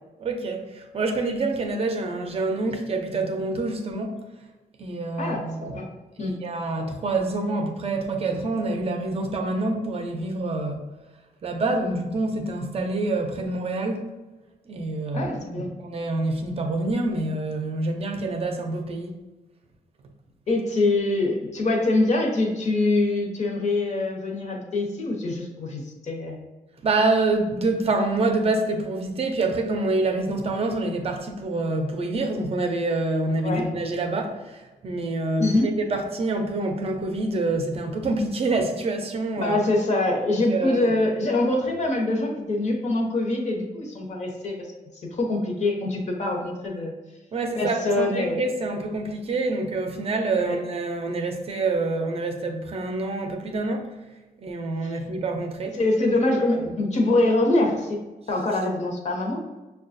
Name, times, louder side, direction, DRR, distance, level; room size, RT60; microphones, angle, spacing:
voice 1, 0.2-4.2 4.8-5.8 6.2-10.8 11.4-14.0 14.7-19.2 26.8-39.6 40.3-40.9 47.3-53.9 54.4-55.8, right 2 dB, 40° right, 5 dB, 0.5 m, -26 dB
voice 2, 5.2-5.8 6.2-6.3 15.1-15.7 20.5-26.4 33.4-33.7 35.4-35.7 39.4-44.5 45.1-46.9 47.5-48.4 50.4-50.6 54.8-55.0 55.7-58.0 58.3-59.4, left 2 dB, 50° left, 0 dB, 0.9 m, -24 dB
6.3 x 2.3 x 2.5 m, 1.1 s
wide cardioid pair, 160°, 15 cm